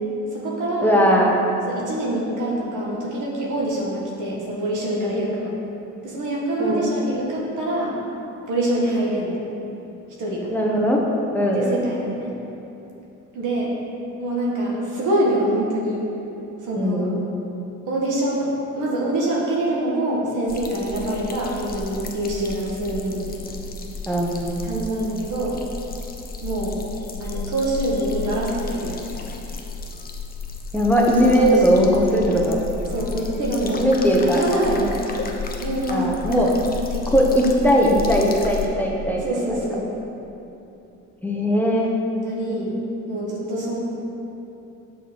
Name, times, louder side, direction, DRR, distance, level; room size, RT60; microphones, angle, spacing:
voice 1, 0.3-0.9 1.7-5.5 6.0-7.9 8.5-9.4 10.2-10.5 11.5-12.3 13.3-13.7 14.2-16.0 16.6-17.1 17.9-18.5 18.8-23.5 24.6-25.6 26.4-26.8 27.2-29.2 31.3-31.9 32.9-33.9 34.2-35.2 35.6-36.1 36.9-37.1 39.2-39.9 42.2-42.7 43.1-43.8, right 1 dB, 85° right, -4 dB, 1.5 m, -25 dB
voice 2, 0.8-1.4 5.1-5.3 6.6-6.8 10.5-11.0 11.3-11.8 16.8-17.2 24.1-24.6 30.7-32.6 33.7-34.4 35.9-36.5 37.1-39.6 41.2-41.9, equal, 5° left, -3 dB, 1.0 m, -19 dB
sound 1, 20.5-38.7, left 4 dB, 30° left, 0.7 m, -33 dB
6.1 x 4.0 x 6.0 m, 2.9 s
cardioid pair, 90°, 30 cm